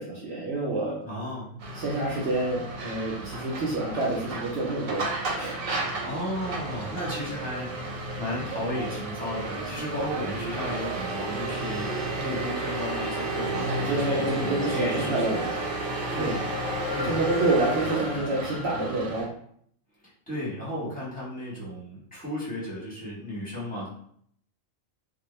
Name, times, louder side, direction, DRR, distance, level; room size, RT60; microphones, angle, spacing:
voice 1, 0.0-1.0 1.7-5.1 5.3-5.6 13.5-15.5 16.1-16.4 17.1-19.3, right 2 dB, 65° right, -4 dB, 0.7 m, -28 dB
voice 2, 1.0-1.5 6.0-15.4 15.9-16.4 16.9-17.1 20.3-23.9, left 1 dB, 5° left, -8 dB, 0.9 m, -34 dB
sound 1, 1.6-19.2, right 2 dB, 85° right, 1.0 m, -32 dB
sound 2, 11.8-18.6, left 4 dB, 70° left, 0.8 m, -38 dB
2.2 x 2.1 x 3.0 m, 0.65 s
omnidirectional pair, 1.4 m